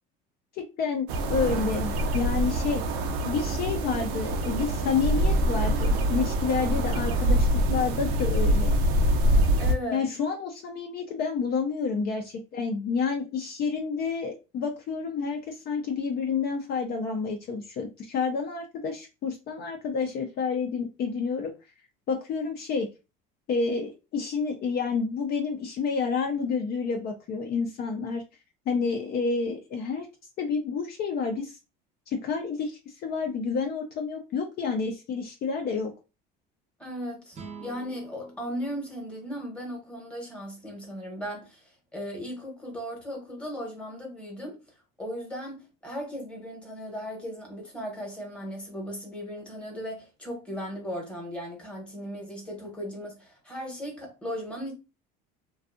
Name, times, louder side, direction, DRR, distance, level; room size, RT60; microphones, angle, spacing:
voice 1, 0.5-2.8 3.3-8.8 9.9-21.5 22.1-22.9 23.5-28.2 28.7-30.1 30.4-31.6 32.1-35.9, left 5 dB, 50° left, 0.5 m, -29 dB
sound 1, 1.1-9.7, right 1 dB, 80° right, 0.5 m, -25 dB
voice 2, 9.6-10.0 36.8-44.6 45.0-54.7, equal, 5° left, 1.0 m, -37 dB
sound 2, 37.3-40.6, right 4 dB, 30° right, 0.6 m, -48 dB
2.6 x 2.3 x 2.4 m
cardioid pair, 115°, 21 cm